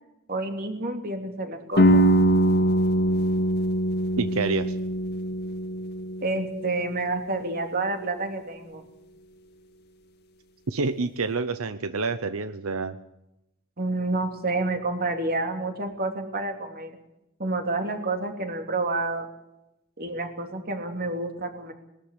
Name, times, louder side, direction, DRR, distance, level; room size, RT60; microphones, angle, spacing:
voice 1, 0.3-2.1 6.2-8.8 13.8-17.0 17.4-19.3 20.0-21.7, right 2 dB, 45° right, 5 dB, 3.0 m, -29 dB
sound 1, 1.8-7.5, right 1 dB, 55° left, 1.9 m, -23 dB
voice 2, 4.2-4.8 10.7-13.0, right 4 dB, 90° right, 11 dB, 0.9 m, -28 dB
20.5 x 13.0 x 10.0 m, 0.89 s
head